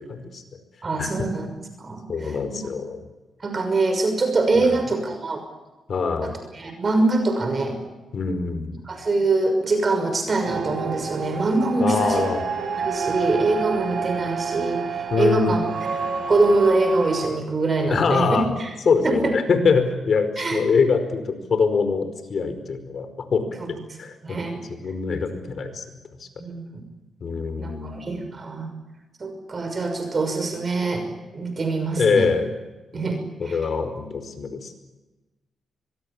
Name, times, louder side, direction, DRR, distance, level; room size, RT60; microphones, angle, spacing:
voice 1, 0.1-0.4 1.0-1.3 2.1-3.0 4.6-4.7 5.9-6.4 8.1-8.8 11.8-12.4 15.1-15.6 17.9-18.5 18.8-24.4 24.7-25.8 26.2-26.3 27.2-28.3 32.0-32.5 32.9-33.0 33.4-34.7, left 5 dB, 60° left, 9 dB, 5.0 m, -24 dB
voice 2, 0.8-1.5 1.8-2.4 3.4-5.4 6.2-7.8 8.9-12.2 12.8-18.3 18.6-18.7 19.0-19.3 20.4-20.6 23.6-23.7 24.2-24.6 26.4-26.8 27.6-28.7 29.2-31.0 31.3-32.3 32.9-33.2 33.5-33.6, right 3 dB, 40° right, 6 dB, 6.0 m, -24 dB
sound 1, 10.4-17.3, right 5 dB, 65° right, 4.5 m, -29 dB
24.5 x 22.0 x 8.7 m, 1.1 s
cardioid pair, 80°, 0 cm